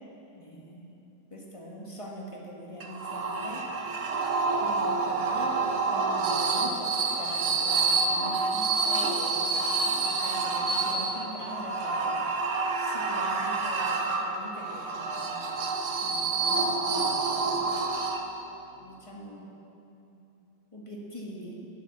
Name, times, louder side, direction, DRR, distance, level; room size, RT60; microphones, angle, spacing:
voice 1, 0.3-1.0 1.3-3.7 4.0-4.1 4.6-12.2 12.8-15.5 16.0-17.1 17.5-17.9 18.8-19.5 20.0-20.2 20.7-21.6, equal, 20° left, -2 dB, 1.6 m, -42 dB
sound 1, 2.8-18.5, right 4 dB, 55° right, 1.0 m, -28 dB
9.8 x 9.2 x 7.3 m, 2.8 s
omnidirectional pair, 2.0 m